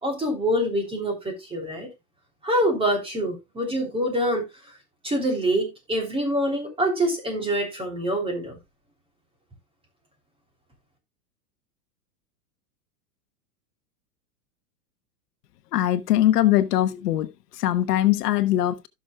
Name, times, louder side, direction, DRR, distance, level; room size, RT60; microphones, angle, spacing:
voice 1, 0.0-1.9 2.4-4.4 5.0-8.6, equal, 10° right, 3.2 m, -25 dB
voice 2, 15.7-17.3 17.5-18.9, left 13 dB, 80° left, 1.1 m, -21 dB
15.5 x 6.3 x 2.3 m
supercardioid pair, 135°, 46 cm